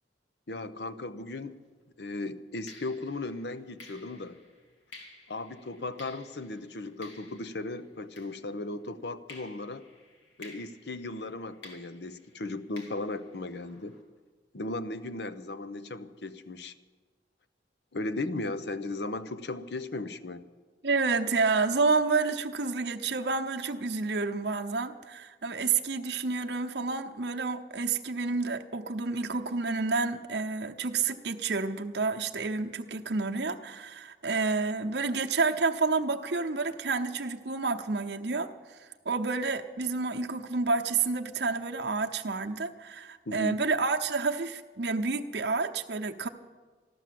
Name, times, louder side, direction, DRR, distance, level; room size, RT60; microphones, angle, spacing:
voice 1, 0.5-1.6 2.0-4.4 5.3-9.9 10.4-14.0 14.5-16.7 17.9-20.5 43.3-43.6, left 2 dB, 70° left, 13 dB, 0.8 m, -36 dB
sound 1, 1.5-1.7 2.7-8.8 9.3-14.0, left 3 dB, 90° left, 3.0 m, -54 dB
voice 2, 20.8-46.3, right 4 dB, 65° right, 4 dB, 0.8 m, -29 dB
13.5 x 12.5 x 7.7 m, 1.4 s
head